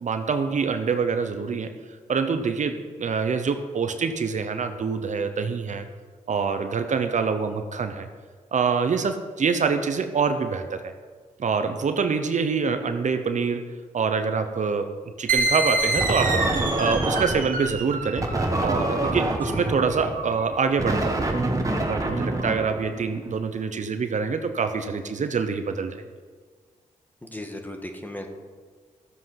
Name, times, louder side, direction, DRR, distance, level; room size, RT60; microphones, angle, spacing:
voice 1, 0.0-1.7 2.1-5.9 6.3-8.1 8.5-10.9 11.4-13.7 13.9-14.9 15.2-16.5 16.8-18.2 18.6-21.3 21.8-26.0, right 5 dB, 60° right, 8 dB, 0.9 m, -25 dB
sound 1, 15.3-22.5, right 2 dB, 75° right, 1.7 m, -28 dB
sound 2, 16.0-17.6 18.2-23.3, right 1 dB, 25° right, 1.7 m, -26 dB
voice 2, 27.2-28.3, left 1 dB, 10° left, 4 dB, 1.7 m, -36 dB
13.5 x 7.7 x 5.9 m, 1.5 s
cardioid pair, 70°, 14 cm